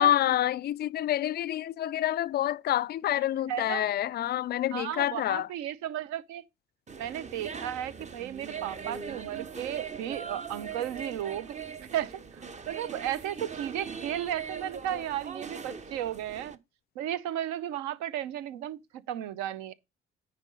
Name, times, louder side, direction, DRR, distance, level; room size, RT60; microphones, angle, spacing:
voice 1, 0.0-5.5, left 12 dB, 30° left, 0.4 m, -27 dB
voice 2, 3.5-3.9 4.7-6.4 7.0-11.6 11.9-16.6 17.0-18.8 19.1-19.7, right 11 dB, 60° right, 0.7 m, -34 dB
sound 1, 6.9-16.6, right 6 dB, 20° right, 0.7 m, -41 dB
9.7 x 4.2 x 5.4 m
figure-of-eight pair, 50°, 32 cm